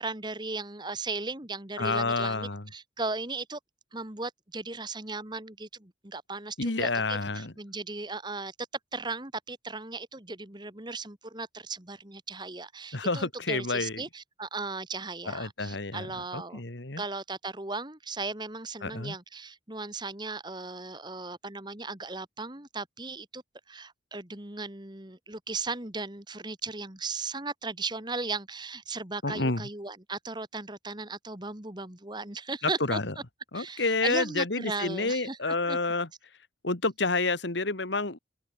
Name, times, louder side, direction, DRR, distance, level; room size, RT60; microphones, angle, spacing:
voice 1, 0.0-3.6 3.9-8.5 8.9-16.6 17.0-33.0 33.5-35.8, right 3 dB, 25° right, 2.1 m, -37 dB
voice 2, 1.8-2.7 6.6-7.5 12.9-14.0 15.3-16.1 16.3-17.0 18.8-19.2 29.2-29.6 32.9-33.1 33.5-36.1 36.6-38.2, left 3 dB, 70° left, 2.2 m, -29 dB
open air
head